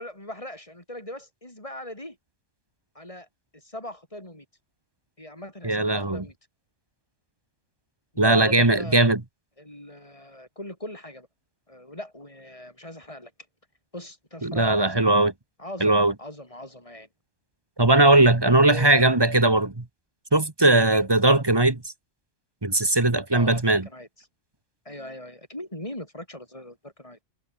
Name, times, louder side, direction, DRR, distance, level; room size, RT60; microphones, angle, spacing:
voice 1, 0.0-2.2 2.9-3.3 3.5-4.5 5.2-6.3 8.1-9.1 9.6-11.3 11.7-13.3 13.9-15.0 15.6-17.1 18.6-19.1 20.7-21.0 23.3-24.3 24.9-27.2, left 1 dB, 25° left, 5.9 m, -40 dB
voice 2, 5.6-6.2 8.2-9.2 14.4-15.3 15.8-16.1 17.8-19.8 20.3-21.8 22.6-23.9, right 2 dB, 20° right, 1.5 m, -19 dB
omnidirectional pair, 1.3 m